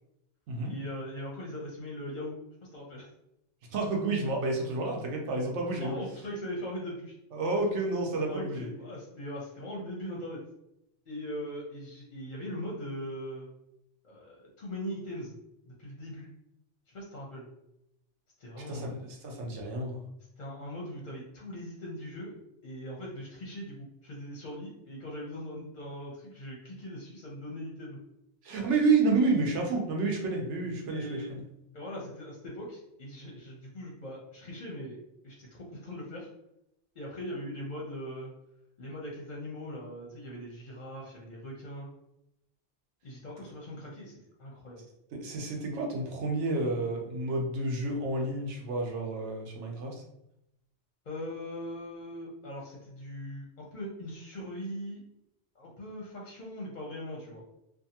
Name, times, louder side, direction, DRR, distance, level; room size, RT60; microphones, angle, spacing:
voice 1, 0.6-2.4 2.7-3.1 5.8-7.2 8.3-10.4 11.1-13.5 14.0-15.4 15.7-16.3 16.9-17.5 18.4-19.1 20.4-28.0 30.9-31.3 31.7-35.0 35.2-36.3 37.0-38.3 38.8-41.9 43.0-44.8 51.0-55.0 55.5-57.4, equal, 50° left, -3 dB, 0.6 m, -40 dB
voice 2, 3.7-6.0 7.3-8.7 18.7-20.0 28.4-31.4 45.1-50.0, right 3 dB, 75° right, 1 dB, 0.9 m, -30 dB
2.6 x 2.3 x 2.7 m, 0.83 s
omnidirectional pair, 1.2 m